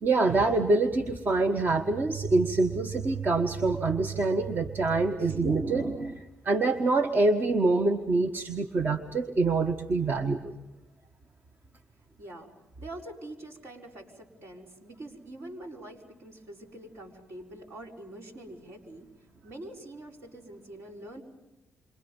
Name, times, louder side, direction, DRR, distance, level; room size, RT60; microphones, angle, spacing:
voice 1, 0.0-10.5, right 3 dB, 45° right, 6 dB, 1.4 m, -25 dB
voice 2, 12.2-12.5 12.8-19.1 19.4-21.2, right 1 dB, 65° right, 0 dB, 4.8 m, -45 dB
29.0 x 26.0 x 5.4 m, 0.98 s
supercardioid pair, 60°, 5 cm